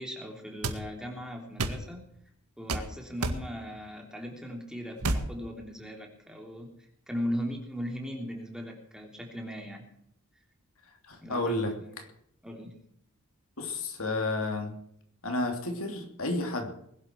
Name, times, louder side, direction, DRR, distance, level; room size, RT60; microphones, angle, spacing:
voice 1, 0.0-2.0 2.6-6.7 7.1-9.9 11.2-11.9 12.4-12.8, equal, 5° right, 1 dB, 3.4 m, -38 dB
sound 1, 0.6-0.8 1.6-1.8 2.7-2.9 3.2-3.4 5.0-5.3, right 2 dB, 85° right, 2.0 m, -29 dB
voice 2, 11.1-11.7 13.6-14.8 15.2-16.9, left 2 dB, 70° left, 4 dB, 3.0 m, -31 dB
21.0 x 12.0 x 4.7 m, 0.71 s
head